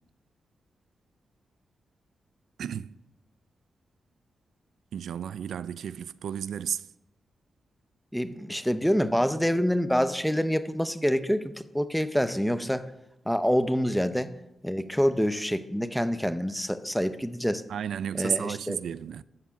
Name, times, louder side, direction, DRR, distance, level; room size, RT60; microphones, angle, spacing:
voice 1, 2.6-2.9 4.9-6.8 17.7-19.2, right 8 dB, 90° right, 0.3 m, -33 dB
voice 2, 8.1-12.8 13.3-14.3 14.6-17.6 18.1-18.8, equal, ahead, 0.6 m, -26 dB
13.0 x 7.3 x 5.8 m
wide cardioid pair, 115°, 0 cm